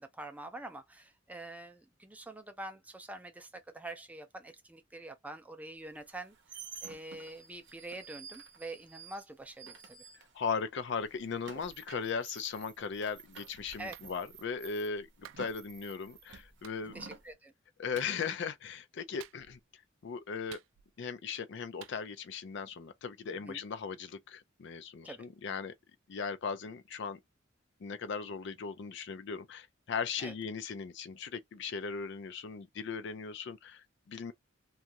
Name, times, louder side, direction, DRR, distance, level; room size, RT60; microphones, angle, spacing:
voice 1, 0.0-6.3 6.8-10.0 13.8-14.0 16.9-17.5 23.3-23.6 25.0-25.3 30.2-30.3, right 2 dB, 10° right, 0.4 m, -45 dB
sound 1, 6.0-10.7 10.9-17.3, right 6 dB, 65° right, 0.7 m, -51 dB
voice 2, 10.3-16.9 17.8-19.6 20.0-20.6 21.0-25.7 26.1-27.2 27.8-34.3, left 5 dB, 65° left, 0.4 m, -38 dB
Clapping, 13.9-14.1 15.2-15.5 16.6-16.8 17.9-18.2 19.2-19.6 20.5-21.1 21.8-22.0, right 11 dB, 85° right, 0.3 m, -51 dB
2.5 x 2.4 x 2.9 m
head